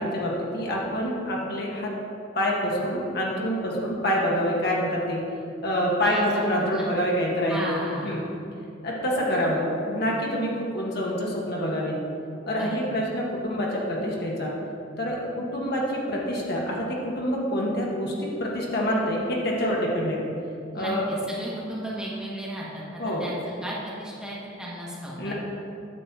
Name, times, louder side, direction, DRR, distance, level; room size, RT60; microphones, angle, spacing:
voice 1, 0.0-1.9 2.3-5.3 5.6-7.8 8.0-8.2 8.8-12.0 12.5-14.5 15.0-20.2 20.7-21.1 23.0-23.2 25.2-25.3, equal, 55° left, -3 dB, 1.5 m, -26 dB
voice 2, 6.0-6.5 6.7-6.9 7.5-8.2 12.5-12.9 20.7-25.3, right 1 dB, 5° right, -6 dB, 1.4 m, -35 dB
9.8 x 4.2 x 7.3 m, 2.6 s
head